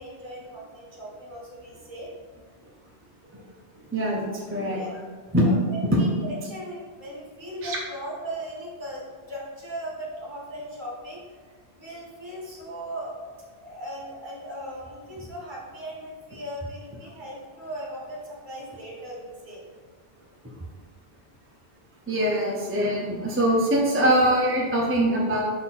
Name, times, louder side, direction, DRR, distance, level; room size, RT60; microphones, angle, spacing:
voice 1, 0.0-2.1 4.7-5.0 5.4-9.0 9.3-11.2 11.5-13.1 13.6-19.6, right 1 dB, 45° right, -4 dB, 1.7 m, -38 dB
voice 2, 3.9-4.8 5.3-5.5 5.8-6.0 7.6-7.8 22.1-25.4, right 1 dB, 15° right, -3 dB, 0.7 m, -23 dB
5.7 x 4.3 x 4.2 m, 1.5 s
omnidirectional pair, 1.1 m